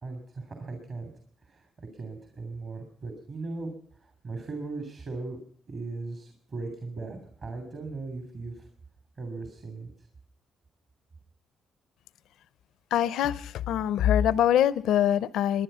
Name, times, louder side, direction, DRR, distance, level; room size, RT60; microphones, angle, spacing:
voice 1, 0.0-1.1 1.4-3.7 4.0-5.4 5.7-8.7 9.2-9.9, right 3 dB, 45° right, 5 dB, 3.1 m, -38 dB
voice 2, 12.9-15.6, left 10 dB, 80° left, 19 dB, 0.6 m, -24 dB
21.0 x 10.0 x 5.5 m, 0.62 s
cardioid pair, 90°, 0 cm